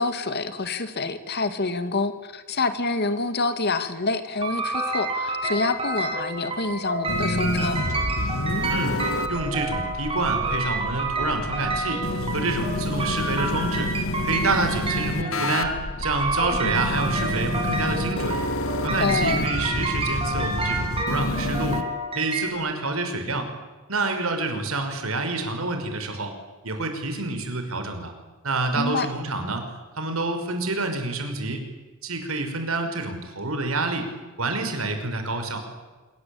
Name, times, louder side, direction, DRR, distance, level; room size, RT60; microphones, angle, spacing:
voice 1, 0.0-7.8 16.6-16.8 19.0-19.5 28.7-29.1, left 3 dB, 50° left, 11 dB, 2.3 m, -27 dB
sound 1, 4.4-22.5, right 2 dB, 25° right, 6.9 m, -29 dB
sound 2, 7.1-21.8, left 1 dB, 75° left, 2.0 m, -29 dB
voice 2, 8.7-9.0 9.3-13.9 14.2-18.4 18.8-21.8 22.2-23.5 23.9-26.3 26.6-28.1 28.4-29.7 30.0-31.6 32.0-34.1 34.4-35.6, right 2 dB, 80° right, 6 dB, 5.7 m, -28 dB
26.5 x 24.0 x 8.7 m, 1.3 s
head